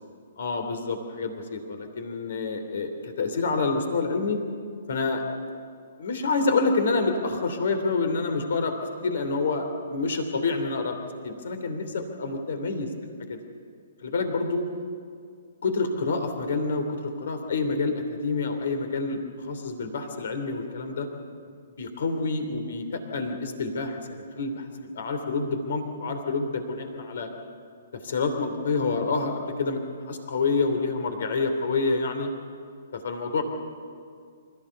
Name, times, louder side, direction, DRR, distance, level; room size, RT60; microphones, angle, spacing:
voice 1, 0.4-4.4 4.9-5.2 6.0-11.0 11.2-12.9 13.3-13.4 14.0-14.7 15.6-21.1 21.8-24.7 24.9-27.3 27.9-32.3 32.9-33.4, left 3 dB, 55° left, 6 dB, 3.1 m, -28 dB
27.0 x 15.0 x 6.9 m, 2.2 s
figure-of-eight pair, 125°, 0 cm